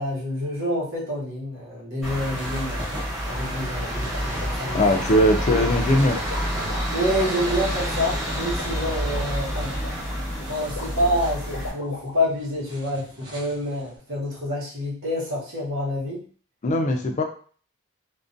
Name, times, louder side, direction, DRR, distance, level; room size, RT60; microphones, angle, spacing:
voice 1, 0.0-4.8 6.9-9.8 10.5-16.2, equal, 60° right, -6 dB, 1.1 m, -27 dB
sound 1, 2.0-11.7, equal, ahead, 0.9 m, -28 dB
sound 2, 2.1-14.0, equal, 20° right, 0.5 m, -43 dB
sound 3, 3.0-12.1, left 3 dB, 85° left, 0.6 m, -39 dB
voice 2, 4.7-6.2 16.6-17.2, equal, 35° left, 4 dB, 0.3 m, -20 dB
2.4 x 2.2 x 2.5 m, 0.43 s
head